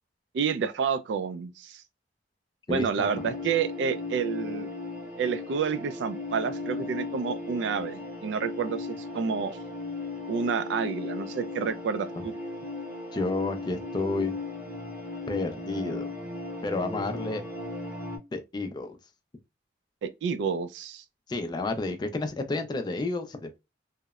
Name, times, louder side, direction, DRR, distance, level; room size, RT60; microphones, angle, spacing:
voice 1, 0.3-1.8 2.7-4.7 5.2-9.6 10.3-12.3 20.0-21.0, right 6 dB, 80° right, 0.3 m, -29 dB
voice 2, 2.7-3.1 13.1-14.3 15.3-16.0 16.6-17.4 18.3-19.0 21.3-23.6, left 2 dB, 25° left, 0.3 m, -31 dB
sound 1, 3.0-18.2, left 2 dB, 5° right, 0.8 m, -36 dB
2.8 x 2.0 x 2.3 m
head